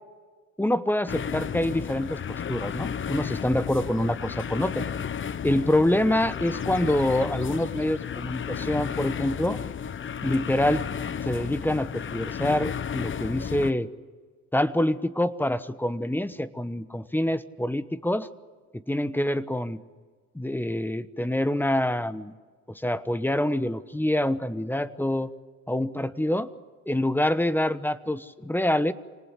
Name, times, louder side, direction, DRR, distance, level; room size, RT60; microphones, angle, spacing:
voice 1, 0.6-2.2 2.5-4.8 5.4-9.6 10.2-10.9 11.2-13.9 14.5-18.3 18.9-19.8 20.3-22.3 22.7-25.3 25.7-26.5 26.9-28.9, left 1 dB, 5° left, 13 dB, 1.1 m, -26 dB
sound 1, 1.1-13.7, left 7 dB, 40° left, 0.8 m, -33 dB
26.5 x 19.0 x 8.4 m, 1.5 s
cardioid pair, 90°, 30 cm